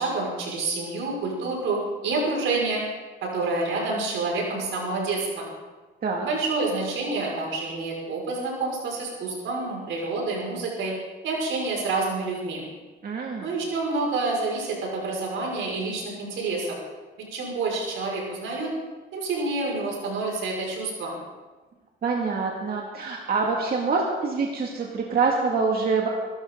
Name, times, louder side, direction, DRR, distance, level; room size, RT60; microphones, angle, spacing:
voice 1, 0.0-2.8 3.2-5.5 6.2-10.9 11.2-12.7 13.4-16.7 17.3-18.7 19.1-21.2, right 3 dB, 80° right, -2 dB, 5.9 m, -28 dB
voice 2, 13.0-13.5 22.0-26.1, right 4 dB, 50° right, -1 dB, 2.3 m, -25 dB
23.0 x 13.5 x 3.9 m, 1.3 s
cardioid pair, 90°, 20 cm